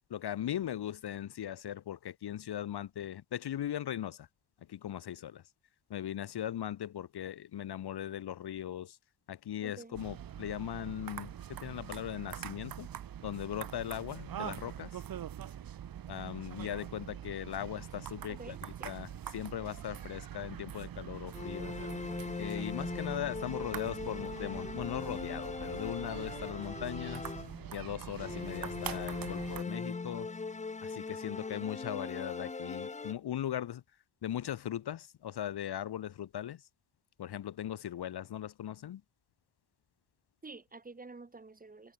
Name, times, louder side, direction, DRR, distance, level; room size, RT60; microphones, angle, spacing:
voice 1, 0.1-4.3 4.7-5.4 5.9-9.0 9.3-12.9 13.2-15.0 16.1-21.8 22.4-27.3 27.7-30.3 30.8-33.8 34.2-36.6 37.2-39.0, left 11 dB, 60° left, 0.9 m, -39 dB
voice 2, 9.6-10.0 18.3-18.9 23.6-24.2 40.4-41.9, right 3 dB, 20° right, 1.4 m, -50 dB
sound 1, 9.9-29.6, right 10 dB, 50° right, 0.8 m, -44 dB
sound 2, 21.3-27.8 28.2-33.1, left 4 dB, 15° left, 0.6 m, -40 dB
wide cardioid pair, 165°, 43 cm